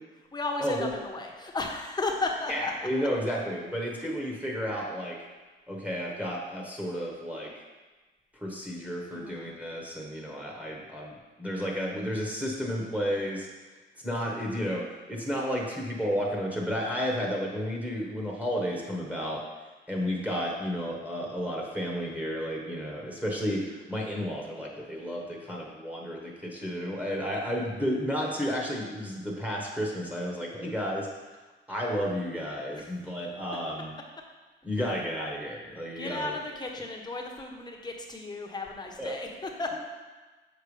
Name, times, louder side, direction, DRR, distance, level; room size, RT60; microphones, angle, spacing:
voice 1, 0.3-2.9 9.1-9.5 32.7-32.9 35.6-39.8, left 3 dB, 20° left, 1 dB, 1.0 m, -34 dB
voice 2, 2.5-5.2 5.7-7.5 8.3-13.5 14.0-19.4 19.9-31.4 31.7-33.9 34.6-36.4 39.0-39.2, equal, 5° right, -2 dB, 1.3 m, -32 dB
6.7 x 4.6 x 3.3 m, 1.3 s
cardioid pair, 90°, 20 cm